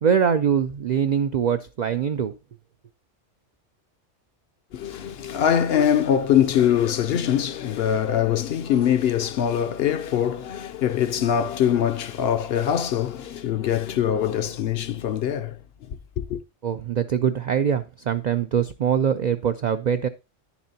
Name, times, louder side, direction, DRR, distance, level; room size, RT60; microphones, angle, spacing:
voice 1, 0.0-2.3 16.6-20.1, right 8 dB, 70° right, 0.4 m, -23 dB
voice 2, 4.7-15.6 16.2-16.4, left 9 dB, 65° left, 0.7 m, -23 dB
10.0 x 7.0 x 2.7 m
omnidirectional pair, 1.3 m